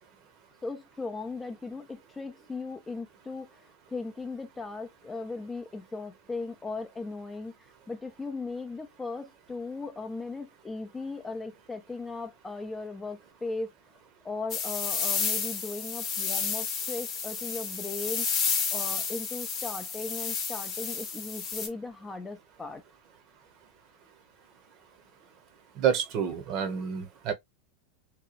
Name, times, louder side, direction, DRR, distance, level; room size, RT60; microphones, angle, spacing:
voice 1, 0.6-13.7 14.2-22.8, left 3 dB, 15° left, 0.5 m, -38 dB
sound 1, 14.5-21.7, left 6 dB, 35° left, 0.9 m, -31 dB
voice 2, 25.8-27.3, right 8 dB, 45° right, 0.8 m, -28 dB
2.9 x 2.2 x 2.4 m
supercardioid pair, 125°, 0 cm